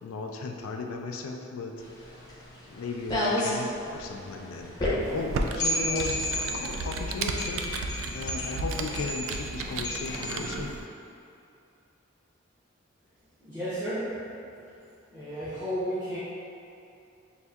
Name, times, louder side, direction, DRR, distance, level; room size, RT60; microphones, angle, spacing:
voice 1, 0.0-1.8 2.7-4.7 5.1-6.3 6.5-7.8 8.1-10.7, left 3 dB, 85° left, 2 dB, 0.3 m, -36 dB
sound 1, 1.8-10.5, left 1 dB, 20° left, 0.6 m, -32 dB
Computer keyboard, 5.0-10.8, right 3 dB, 75° right, 0.3 m, -34 dB
voice 2, 13.4-14.1 15.1-16.2, equal, 15° right, -15 dB, 0.7 m, -32 dB
6.2 x 2.6 x 2.3 m, 2.6 s
head